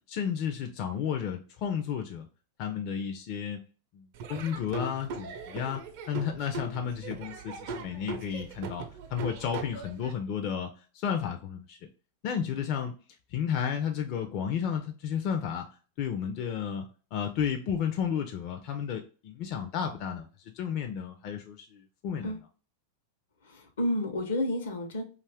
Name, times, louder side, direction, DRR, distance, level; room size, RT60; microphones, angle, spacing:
voice 1, 0.0-2.3 2.6-3.6 3.9-11.8 12.2-12.9 13.3-15.7 16.0-16.9 17.1-20.3 20.5-22.3, left 8 dB, 50° left, 4 dB, 0.4 m, -32 dB
Laughter / Drum, 4.1-10.1, right 4 dB, 60° right, 0.5 m, -40 dB
voice 2, 23.4-25.0, left 1 dB, 80° left, 5 dB, 0.8 m, -30 dB
2.6 x 2.4 x 3.3 m, 0.37 s
hypercardioid pair, 110°, 0 cm